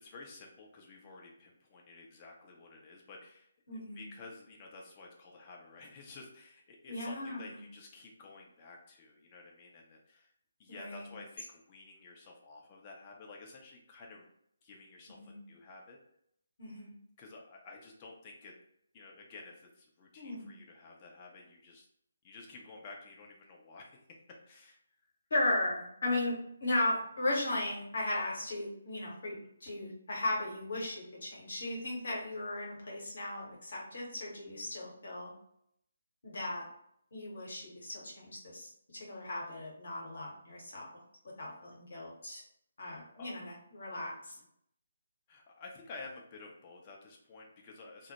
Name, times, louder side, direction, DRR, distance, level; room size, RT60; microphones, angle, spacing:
voice 1, 0.0-10.3 10.6-14.3 14.6-16.0 17.2-18.5 18.9-21.9 22.2-24.0 24.5-24.8 29.4-29.5 42.8-43.4 44.4-44.5 45.3-48.1, left 3 dB, 25° left, -1 dB, 0.5 m, -52 dB
voice 2, 3.7-4.0 6.9-7.6 10.7-11.1 15.1-15.4 16.6-16.9 20.2-20.5 25.3-35.3 36.2-36.6 37.1-40.9 41.4-42.4 42.8-44.4, left 2 dB, 55° left, -3 dB, 0.9 m, -36 dB
2.1 x 2.0 x 2.9 m, 0.71 s
figure-of-eight pair, 145°, 0 cm